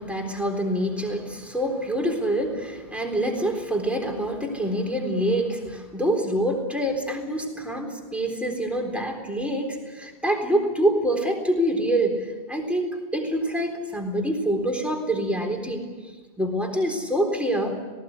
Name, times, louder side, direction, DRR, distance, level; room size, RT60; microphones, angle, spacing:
voice 1, 0.0-15.8 16.4-17.8, right 1 dB, ahead, 1 dB, 3.9 m, -26 dB
18.5 x 18.5 x 9.8 m, 1.4 s
omnidirectional pair, 1.1 m